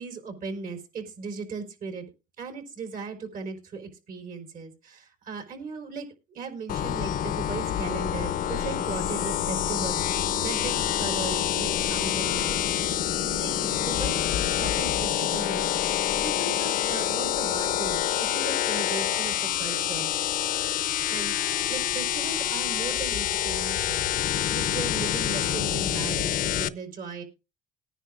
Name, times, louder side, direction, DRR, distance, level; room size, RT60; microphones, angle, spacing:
voice 1, 0.0-2.0 2.4-20.1 21.1-27.2, right 5 dB, 55° right, 5 dB, 4.5 m, -37 dB
sound 1, 6.7-26.7, left 11 dB, 60° left, 0.8 m, -27 dB
21.0 x 10.0 x 2.5 m, 0.29 s
cardioid pair, 110°, 17 cm